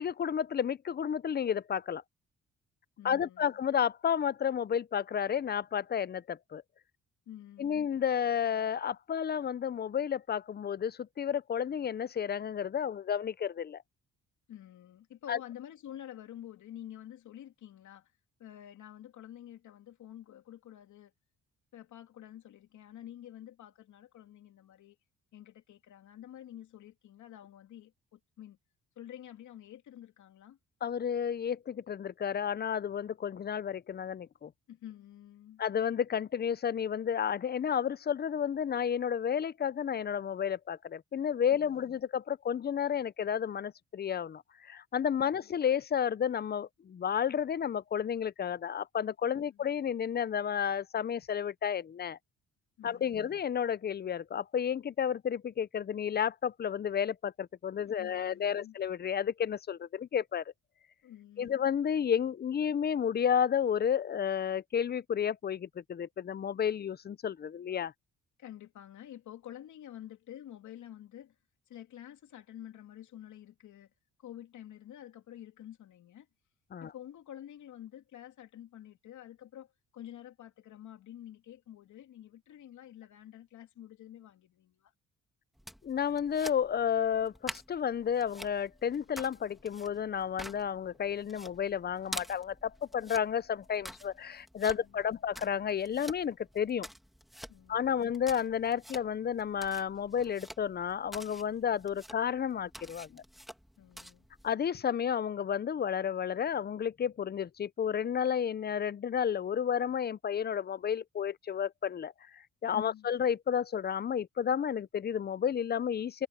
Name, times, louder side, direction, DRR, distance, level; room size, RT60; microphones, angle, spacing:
voice 1, 0.0-2.0 3.0-6.6 7.6-13.8 15.3-15.4 30.8-34.5 35.6-52.2 52.8-60.4 61.4-67.9 76.7-76.9 85.8-96.9 97.7-103.2 104.4-116.3, left 8 dB, 35° left, 0.6 m, -31 dB
voice 2, 3.0-3.6 7.3-7.8 14.5-18.1 18.4-21.1 21.7-25.0 25.3-28.6 29.0-30.6 34.7-35.6 41.5-41.9 45.2-45.5 49.3-49.8 52.8-53.3 57.8-58.8 61.0-61.6 68.4-71.3 71.7-73.9 74.2-76.3 76.8-84.9 94.6-95.2 97.5-98.0 103.8-104.3 112.7-113.1, left 11 dB, 75° left, 2.9 m, -49 dB
sound 1, 85.5-104.5, equal, ahead, 2.8 m, -49 dB
cardioid pair, 90°, 30 cm